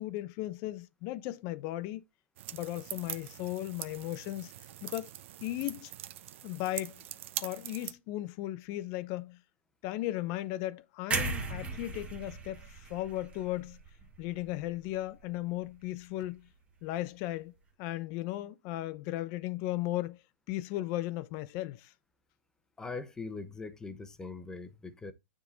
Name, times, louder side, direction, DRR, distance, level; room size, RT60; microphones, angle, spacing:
voice 1, 0.0-2.0 2.5-4.5 4.8-5.1 5.4-5.9 6.4-7.0 7.4-9.4 9.8-13.8 14.2-16.5 16.8-17.5 17.8-20.2 20.5-21.9, left 15 dB, 35° left, 0.7 m, -36 dB
sound 1, 2.4-7.9, right 12 dB, 55° right, 0.8 m, -43 dB
sound 2, 11.1-15.1 15.5-15.7, right 3 dB, 15° right, 1.5 m, -37 dB
voice 2, 22.8-25.1, left 3 dB, 10° left, 0.9 m, -41 dB
9.4 x 3.7 x 4.0 m
hypercardioid pair, 150°, 8 cm